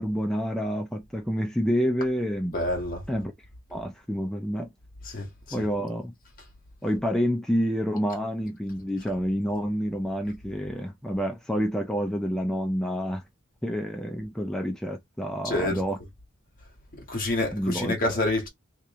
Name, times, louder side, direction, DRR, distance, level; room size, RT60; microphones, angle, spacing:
voice 1, 0.0-2.5 3.1-3.3 3.7-4.7 5.5-6.1 6.8-13.2 13.6-16.0 17.5-18.2, equal, 5° left, 0.4 m, -28 dB
voice 2, 2.5-3.0 5.0-5.3 5.6-5.7 15.4-15.8 17.1-18.5, left 2 dB, 45° left, 1.4 m, -27 dB
3.0 x 2.9 x 3.5 m
head